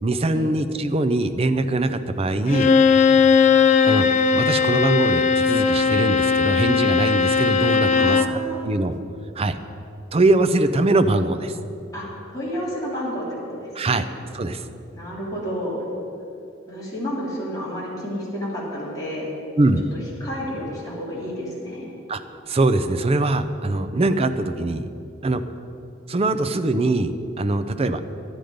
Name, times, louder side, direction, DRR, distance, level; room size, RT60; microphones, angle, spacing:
voice 1, 0.0-2.7 3.8-4.1 4.3-9.0 9.4-9.6 10.1-11.6 13.7-14.1 14.3-14.7 19.6-19.8 22.1-22.2 22.5-24.9 25.2-25.4 26.1-27.1 27.4-28.0, right 2 dB, 30° right, 8 dB, 0.5 m, -22 dB
Bowed string instrument, 2.5-8.4, left 5 dB, 40° left, 0.4 m, -18 dB
voice 2, 7.9-8.6 11.9-14.1 14.9-15.8 16.7-19.3 20.2-21.9, equal, 20° left, -7 dB, 3.3 m, -31 dB
11.5 x 9.4 x 5.1 m, 2.7 s
head